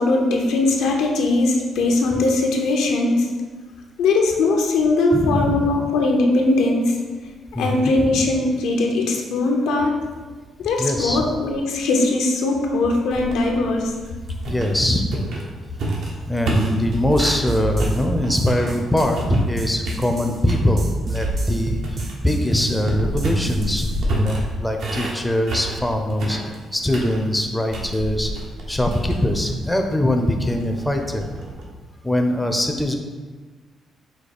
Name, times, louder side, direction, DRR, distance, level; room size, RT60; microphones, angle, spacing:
voice 1, 0.0-3.3 4.0-7.0 7.6-9.9 10.6-13.9, left 2 dB, 90° left, 1 dB, 0.6 m, -20 dB
voice 2, 5.1-5.6 7.5-8.2 10.8-11.2 14.5-15.3 16.3-21.8 22.2-26.4 26.7-28.3 28.7-31.2 32.0-33.0, left 1 dB, 5° left, 4 dB, 0.4 m, -22 dB
sound 1, 13.1-17.5 17.8-19.5 19.8-20.7 21.1-31.6, right 1 dB, 70° right, 0.8 m, -29 dB
sound 2, 16.9-24.0, right 2 dB, 45° right, 0.5 m, -28 dB
4.8 x 2.2 x 4.1 m, 1.4 s
cardioid pair, 90°, 0 cm